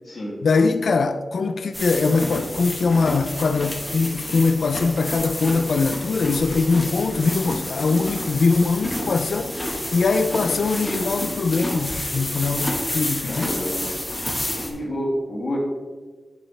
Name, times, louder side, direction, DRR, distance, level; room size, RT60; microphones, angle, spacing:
voice 1, 0.4-13.6, left 4 dB, 85° left, 0.3 m, -22 dB
sound 1, 1.7-14.7, left 1 dB, 20° left, 1.4 m, -29 dB
voice 2, 13.3-13.9 14.7-15.6, equal, 70° left, 2.0 m, -28 dB
10.0 x 4.3 x 3.3 m
wide cardioid pair, 95°, 0 cm